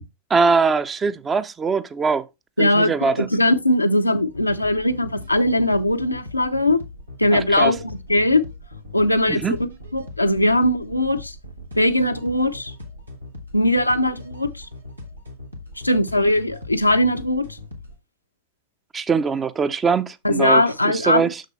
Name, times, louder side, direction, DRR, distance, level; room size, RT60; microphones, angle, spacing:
voice 1, 0.3-2.2 2.6-3.3 7.3-7.7 9.3-9.5 18.9-21.4, right 5 dB, 20° right, 0.6 m, -22 dB
voice 2, 2.6-6.8 7.2-8.4 8.9-9.4 9.9-11.3 11.8-12.7 13.5-14.7 15.8-17.6 20.2-21.2, left 1 dB, 85° left, 0.6 m, -20 dB
sound 1, 4.3-17.9, left 2 dB, 85° right, 1.6 m, -39 dB
6.5 x 6.4 x 3.1 m
figure-of-eight pair, 90°, 0 cm